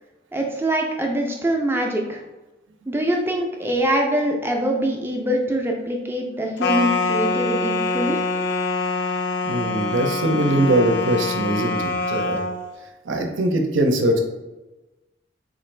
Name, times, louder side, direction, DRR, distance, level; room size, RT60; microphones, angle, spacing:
voice 1, 0.3-2.2 2.9-8.2, right 1 dB, 10° right, 1 dB, 0.4 m, -23 dB
sound 1, 6.6-12.6, left 3 dB, 70° left, 0.4 m, -24 dB
voice 2, 9.4-12.4 13.0-14.2, right 1 dB, 85° right, 4 dB, 0.6 m, -21 dB
3.8 x 2.5 x 3.2 m, 1.1 s
head